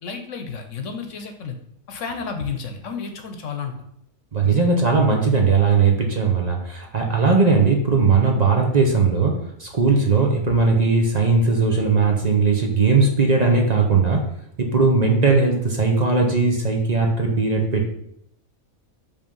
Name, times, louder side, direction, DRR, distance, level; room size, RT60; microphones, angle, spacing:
voice 1, 0.0-1.6 1.9-3.7 4.4-4.6, left 5 dB, 65° left, 5 dB, 1.1 m, -31 dB
voice 2, 4.3-14.2 14.6-17.9, right 4 dB, 35° right, 1 dB, 0.8 m, -18 dB
5.4 x 3.4 x 5.4 m, 0.75 s
omnidirectional pair, 1.5 m